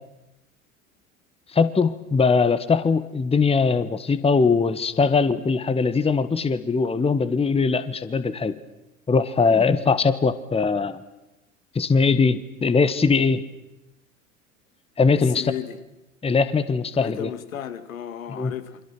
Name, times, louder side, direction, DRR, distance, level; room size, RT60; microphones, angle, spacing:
voice 1, 1.5-8.6 9.1-11.0 11.7-13.4 15.0-15.4 16.2-17.3 18.3-18.5, left 4 dB, 15° left, 1.5 m, -21 dB
voice 2, 15.1-15.8 16.9-18.8, left 9 dB, 75° left, 2.0 m, -34 dB
29.0 x 25.5 x 6.1 m
figure-of-eight pair, 75°, 41 cm